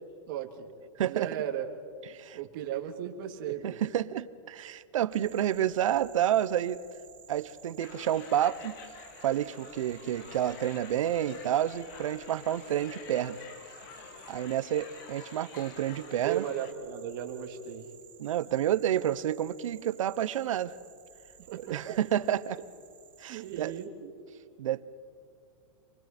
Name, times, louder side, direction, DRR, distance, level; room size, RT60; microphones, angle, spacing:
voice 1, 0.3-0.7 1.0-1.7 2.3-3.8 16.2-17.9 21.4-21.7 23.2-24.1, right 10 dB, 40° right, 3 dB, 2.3 m, -36 dB
voice 2, 1.0-1.3 2.1-2.4 3.6-6.8 7.3-8.8 9.2-13.4 14.3-16.4 18.2-20.7 21.6-22.6 23.2-23.7 24.6-24.8, right 11 dB, 80° right, 14 dB, 1.0 m, -29 dB
sound 1, 5.1-23.9, right 7 dB, 10° right, 1.3 m, -54 dB
sound 2, 7.8-16.7, left 7 dB, 40° left, 1.4 m, -49 dB
27.5 x 22.5 x 4.4 m, 2.4 s
supercardioid pair, 170°, 16 cm